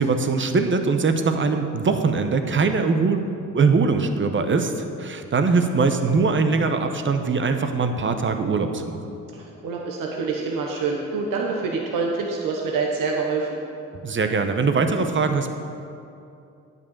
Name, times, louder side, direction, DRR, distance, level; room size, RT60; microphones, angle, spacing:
voice 1, 0.0-3.3 3.5-9.0 14.0-15.5, right 4 dB, 35° right, 7 dB, 0.9 m, -22 dB
voice 2, 9.3-13.6, right 4 dB, 85° right, -1 dB, 1.1 m, -26 dB
9.4 x 5.5 x 7.2 m, 2.6 s
cardioid pair, 80°, 32 cm